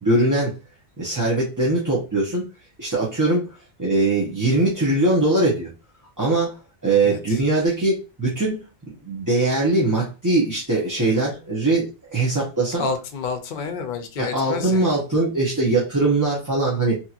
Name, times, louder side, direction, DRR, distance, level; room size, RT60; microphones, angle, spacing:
voice 1, 0.0-0.5 1.0-2.4 2.8-3.5 3.8-5.7 6.2-6.6 6.8-8.6 9.0-12.9 14.2-17.0, right 2 dB, 20° right, -5 dB, 0.7 m, -21 dB
voice 2, 7.0-7.4 12.8-14.9, left 5 dB, 60° left, 6 dB, 0.7 m, -29 dB
2.9 x 2.8 x 2.4 m, 0.30 s
omnidirectional pair, 1.1 m